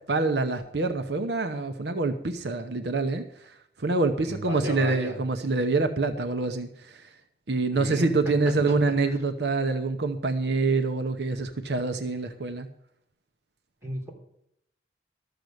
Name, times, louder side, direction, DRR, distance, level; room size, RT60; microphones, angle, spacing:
voice 1, 0.1-7.1 7.5-12.7, right 3 dB, 75° right, 7 dB, 0.8 m, -26 dB
voice 2, 4.2-5.2 7.7-9.0 13.8-14.1, equal, 15° right, -2 dB, 3.3 m, -34 dB
13.0 x 6.8 x 7.8 m, 0.75 s
head